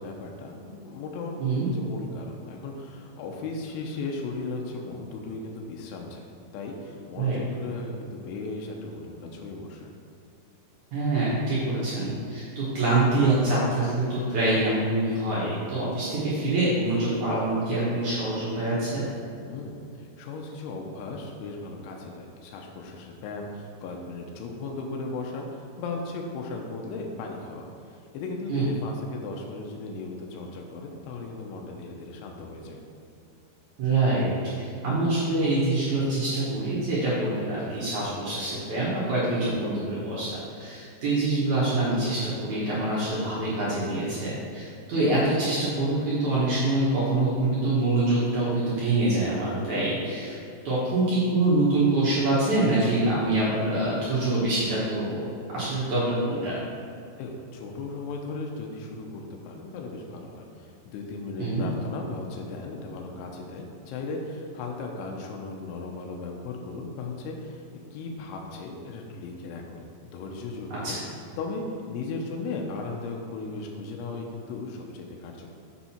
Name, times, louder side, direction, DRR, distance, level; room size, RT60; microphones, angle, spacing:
voice 1, 0.0-1.3 1.6-6.3 6.5-9.9 19.4-32.8 57.2-69.8 70.1-71.0 71.4-75.5, left 3 dB, 85° left, 0 dB, 3.1 m, -36 dB
voice 2, 10.9-19.1 28.5-28.7 33.8-34.3 34.6-40.3 40.5-50.4 50.6-55.2 55.5-56.6 61.4-61.7 70.7-71.0, right 2 dB, 65° right, -9 dB, 2.0 m, -25 dB
7.0 x 6.6 x 4.4 m, 2.6 s
omnidirectional pair, 5.5 m